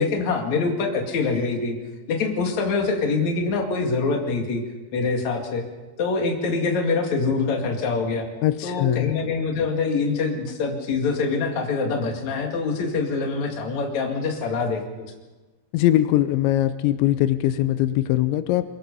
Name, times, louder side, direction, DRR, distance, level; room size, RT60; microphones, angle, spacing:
voice 1, 0.0-1.8 2.1-4.6 4.9-5.6 6.0-8.3 8.6-15.1, left 4 dB, 45° left, 2 dB, 3.2 m, -24 dB
voice 2, 8.4-9.1 15.7-18.7, left 14 dB, 85° left, 11 dB, 3.1 m, -21 dB
23.0 x 22.0 x 5.5 m, 1.3 s
omnidirectional pair, 5.1 m